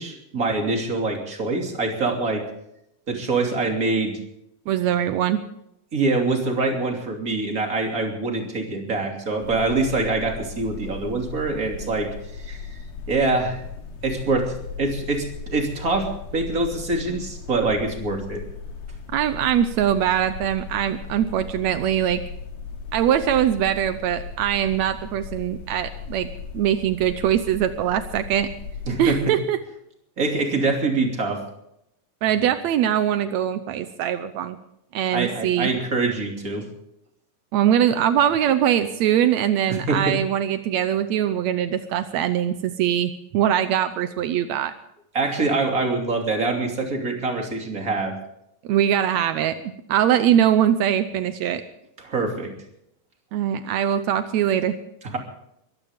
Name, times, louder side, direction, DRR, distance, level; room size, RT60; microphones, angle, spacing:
voice 1, 0.0-2.5 3.1-4.2 5.9-12.8 13.1-13.6 14.0-18.4 28.9-29.4 30.2-31.4 35.1-36.7 39.7-40.2 45.1-48.2 52.0-52.5 55.1-55.2, right 3 dB, 25° right, 2 dB, 2.9 m, -24 dB
voice 2, 4.7-5.4 19.1-22.2 22.9-26.3 26.5-28.5 29.0-29.6 32.2-34.6 34.9-35.7 37.5-44.7 48.7-51.6 53.3-54.8, right 10 dB, 85° right, 11 dB, 1.6 m, -22 dB
sound 1, 9.4-29.2, left 5 dB, 90° left, 4.2 m, -37 dB
22.5 x 15.5 x 3.6 m, 0.78 s
omnidirectional pair, 4.2 m